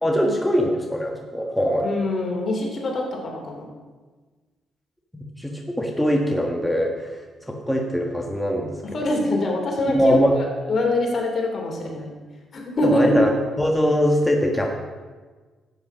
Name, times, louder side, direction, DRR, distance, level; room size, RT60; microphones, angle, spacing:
voice 1, 0.0-1.9 5.1-7.2 7.5-9.0 9.9-10.3 12.8-13.3 13.6-14.8, equal, 5° left, 1 dB, 1.5 m, -22 dB
voice 2, 1.8-3.7 8.8-12.1 12.5-13.0, left 2 dB, 50° left, 1 dB, 3.1 m, -25 dB
10.5 x 8.7 x 6.2 m, 1.4 s
cardioid pair, 75°, 0 cm